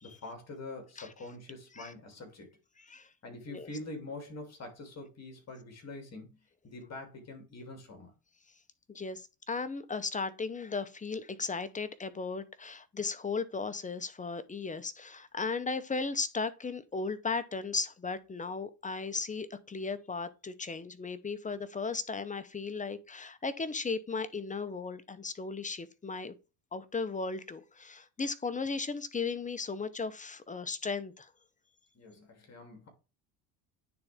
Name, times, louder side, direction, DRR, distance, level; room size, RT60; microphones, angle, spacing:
voice 1, 0.0-2.5 3.2-6.4 6.6-8.1 31.9-32.9, left 2 dB, 40° left, 2.9 m, -45 dB
voice 2, 8.9-26.3 26.7-31.3, left 4 dB, 20° left, 0.8 m, -36 dB
9.5 x 4.0 x 3.5 m
supercardioid pair, 90°, 41 cm